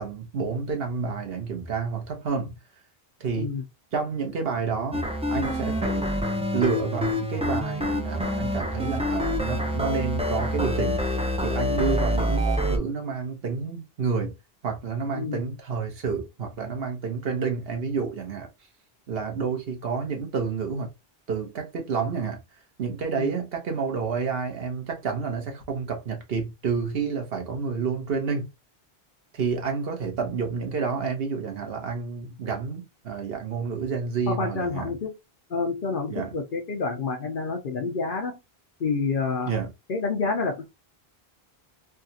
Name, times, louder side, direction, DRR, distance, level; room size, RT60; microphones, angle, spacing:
voice 1, 0.0-2.6 3.2-3.5 3.9-5.0 5.3-6.1 6.5-11.0 11.4-14.4 14.6-18.5 19.1-20.9 21.3-22.4 22.8-28.5 29.3-34.9 36.1-36.3 39.5-39.7, right 5 dB, 70° right, 1.2 m, -29 dB
sound 1, 4.9-12.8, left 1 dB, 10° right, 0.4 m, -26 dB
voice 2, 34.3-35.1 35.5-38.4 38.8-39.5 39.9-40.6, left 4 dB, 60° left, 0.8 m, -28 dB
3.5 x 2.4 x 2.7 m
omnidirectional pair, 1.0 m